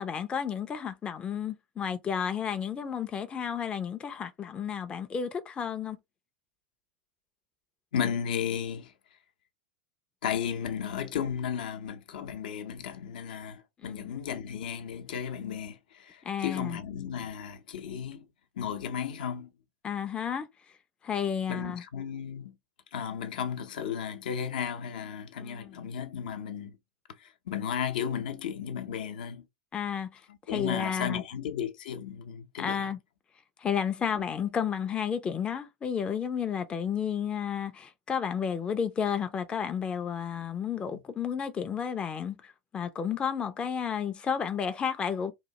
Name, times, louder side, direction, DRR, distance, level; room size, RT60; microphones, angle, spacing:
voice 1, 0.0-6.0 13.8-14.2 16.2-16.8 19.8-20.5 21.0-21.8 25.4-25.8 29.7-30.2 30.5-31.2 32.6-33.0 33.6-45.3, left 7 dB, 20° left, 0.4 m, -32 dB
voice 2, 7.9-8.9 10.2-18.3 18.6-19.5 21.5-22.5 22.9-26.8 27.2-29.4 30.3-32.9 34.1-34.2, left 8 dB, 70° left, 0.6 m, -34 dB
3.0 x 2.2 x 2.7 m
hypercardioid pair, 95°, 5 cm